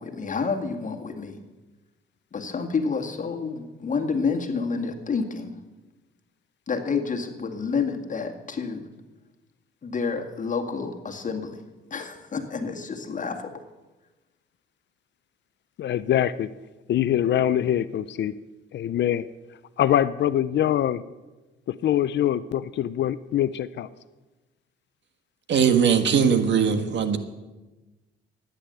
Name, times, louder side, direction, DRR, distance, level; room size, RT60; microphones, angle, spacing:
voice 1, 0.0-1.4 2.3-5.6 6.7-8.9 9.8-11.6 11.9-13.6, left 5 dB, 40° left, 4 dB, 2.0 m, -29 dB
voice 2, 15.8-16.5 16.9-18.4 18.7-19.2 19.8-21.0 21.7-23.9, left 11 dB, 65° left, 15 dB, 0.6 m, -24 dB
voice 3, 25.5-27.2, right 7 dB, 65° right, 8 dB, 1.6 m, -20 dB
13.5 x 10.0 x 7.9 m, 1.1 s
cardioid pair, 90°, 20 cm